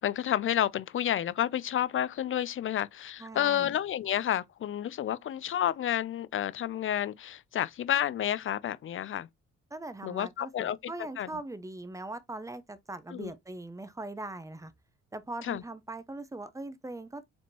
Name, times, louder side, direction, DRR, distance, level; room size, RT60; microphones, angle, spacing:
voice 1, 0.0-9.3 10.0-10.9 11.2-11.3 13.1-13.3 15.4-15.6, left 11 dB, 45° left, 0.5 m, -30 dB
voice 2, 3.2-3.7 9.7-14.7 15.1-17.3, right 2 dB, 10° right, 0.7 m, -41 dB
5.1 x 3.6 x 2.8 m
cardioid pair, 90°, 30 cm